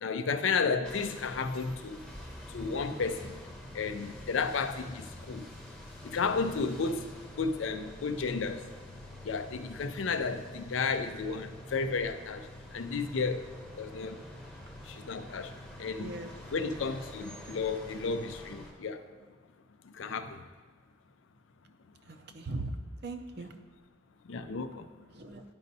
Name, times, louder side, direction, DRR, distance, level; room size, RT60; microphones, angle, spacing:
voice 1, 0.0-2.0 2.5-3.3 3.7-5.5 6.0-7.0 7.4-8.6 9.2-12.4 12.7-13.4 13.8-14.2 14.9-15.5 15.8-16.1 16.5-19.0 20.0-20.4 24.3-24.9, left 4 dB, 75° left, 9 dB, 0.5 m, -32 dB
sound 1, 0.8-18.7, left 1 dB, 5° left, 0.8 m, -47 dB
voice 2, 16.0-16.3 16.7-16.9 22.1-22.7 23.0-23.5 25.1-25.4, right 3 dB, 50° right, 7 dB, 0.5 m, -40 dB
12.0 x 5.3 x 2.7 m, 1.5 s
head